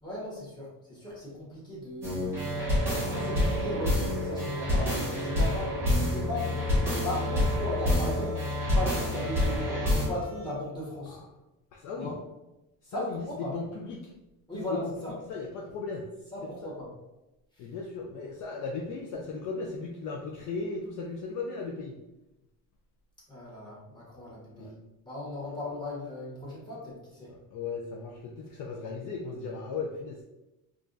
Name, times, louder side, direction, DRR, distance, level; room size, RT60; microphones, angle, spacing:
voice 1, 0.0-2.4 3.0-8.4 8.7-9.7 9.9-11.2 12.0-12.1 12.8-13.5 14.5-15.1 16.3-16.9 17.5-17.6 23.3-24.7 25.0-27.3, left 1 dB, 10° left, -7 dB, 1.3 m, -37 dB
sound 1, 2.0-10.1, left 1 dB, 5° right, 1.4 m, -27 dB
sound 2, 4.5-10.6, left 2 dB, 40° right, 0.7 m, -48 dB
voice 2, 11.7-12.2 12.8-14.1 14.5-14.9 15.3-16.1 16.4-16.7 17.6-22.0 24.5-24.7 27.3-30.2, left 4 dB, 50° left, 0 dB, 0.4 m, -37 dB
4.6 x 2.4 x 2.5 m, 0.97 s
cardioid pair, 160°, 39 cm